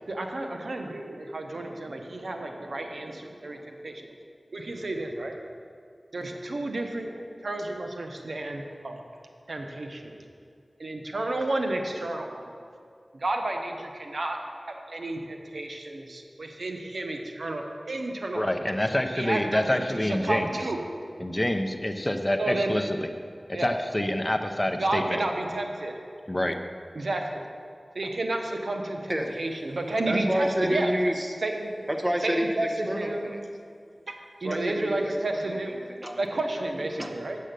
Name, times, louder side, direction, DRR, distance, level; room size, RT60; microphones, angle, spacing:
voice 1, 0.1-4.1 4.5-5.3 6.1-7.1 7.4-9.0 9.5-10.1 10.8-12.5 13.1-18.5 19.1-20.8 22.4-22.8 23.5-23.7 24.8-25.9 26.9-27.4 27.9-30.9 31.4-31.7 32.2-33.3 34.1-35.7 36.2-37.4, right 2 dB, 85° right, 3 dB, 0.8 m, -31 dB
voice 2, 18.3-20.5 21.2-23.1 23.5-25.2 26.3-26.6, left 1 dB, 20° left, 5 dB, 0.6 m, -27 dB
voice 3, 30.0-31.4 31.9-33.4 34.4-37.2, equal, 25° right, 3 dB, 1.1 m, -30 dB
7.6 x 7.5 x 6.7 m, 2.4 s
wide cardioid pair, 60°, 0 cm